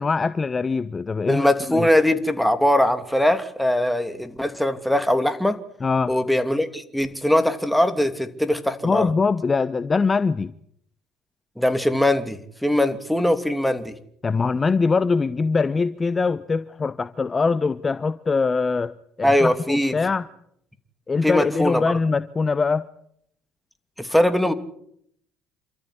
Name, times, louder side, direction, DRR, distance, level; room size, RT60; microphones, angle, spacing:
voice 1, 0.0-1.9 5.8-6.1 8.8-10.5 14.2-18.9 19.2-20.2 21.1-22.9, left 4 dB, 30° left, 15 dB, 0.9 m, -23 dB
voice 2, 1.3-5.6 6.1-9.1 11.6-14.0 19.2-20.0 21.2-22.0 24.0-24.5, left 1 dB, ahead, 9 dB, 2.8 m, -21 dB
28.0 x 13.5 x 10.0 m, 0.72 s
supercardioid pair, 75°, 0 cm